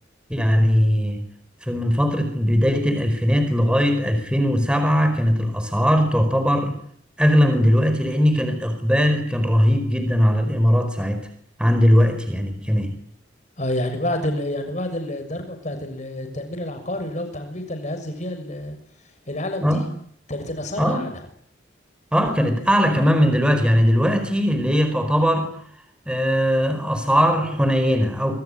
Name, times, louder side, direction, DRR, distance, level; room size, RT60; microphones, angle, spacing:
voice 1, 0.3-1.3 1.6-6.8 7.2-11.3 11.6-13.0 19.6-19.9 20.8-21.0 22.1-25.5 26.1-28.4, equal, 5° right, 8 dB, 4.6 m, -19 dB
voice 2, 13.6-18.8 19.3-19.9 20.3-21.3, left 1 dB, 40° left, 7 dB, 6.6 m, -29 dB
26.5 x 22.5 x 9.8 m, 0.63 s
head